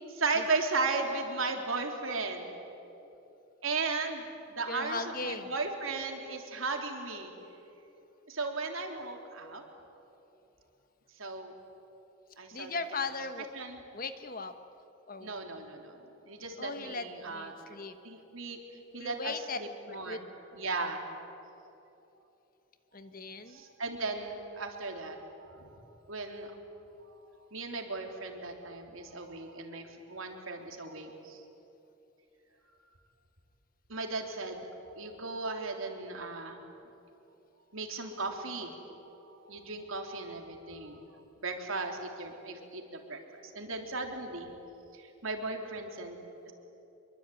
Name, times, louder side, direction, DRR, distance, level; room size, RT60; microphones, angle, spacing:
voice 1, 0.1-2.5 3.6-4.2 4.5-7.3 8.3-9.6 11.2-11.5 12.4-12.8 13.5-13.8 15.2-16.0 16.2-18.6 18.9-20.2 20.5-21.1 23.4-25.8 26.1-26.5 27.0-27.1 27.5-31.4 33.9-34.7 35.0-36.6 37.7-38.7 39.2-41.0 41.4-44.5 44.9-46.5, right 3 dB, 80° right, 3 dB, 3.4 m, -36 dB
voice 2, 4.7-5.5 12.5-13.5 13.9-14.5 15.1-15.4 16.6-18.0 19.0-19.6 19.9-20.2 20.7-20.9 22.9-23.6, left 3 dB, 45° left, 9 dB, 1.3 m, -38 dB
26.0 x 23.0 x 9.3 m, 3.0 s
head